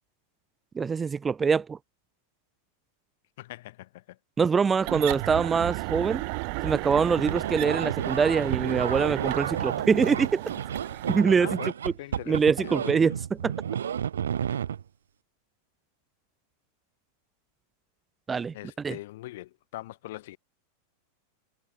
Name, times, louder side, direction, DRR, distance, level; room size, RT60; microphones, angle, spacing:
voice 1, 0.8-1.8 4.4-6.2 6.6-10.4 11.1-11.5 12.3-13.1 13.4-13.5 18.3-18.5 18.8-19.0, right 5 dB, 15° right, 0.5 m, -24 dB
voice 2, 3.4-4.2 11.4-11.7 12.0-13.0 18.5-20.4, left 17 dB, 55° left, 1.6 m, -42 dB
sound 1, 4.8-11.2, right 34 dB, 45° right, 0.7 m, -33 dB
sound 2, 7.2-14.8, right 8 dB, 65° right, 1.5 m, -32 dB
figure-of-eight pair, 90°, 0 cm